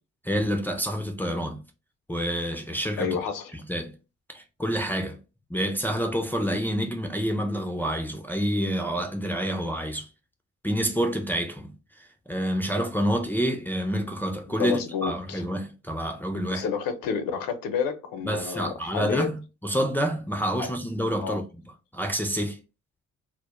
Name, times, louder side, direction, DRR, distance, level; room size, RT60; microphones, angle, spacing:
voice 1, 0.2-1.6 2.1-3.2 3.7-3.9 4.3-5.2 5.5-10.1 10.6-16.6 18.2-21.4 21.9-22.6, equal, 5° left, 0.4 m, -28 dB
voice 2, 3.0-3.5 14.5-15.5 16.5-19.3 20.6-20.7 21.2-21.4, left 6 dB, 70° left, 0.6 m, -30 dB
2.1 x 2.0 x 2.8 m
hypercardioid pair, 55°, 36 cm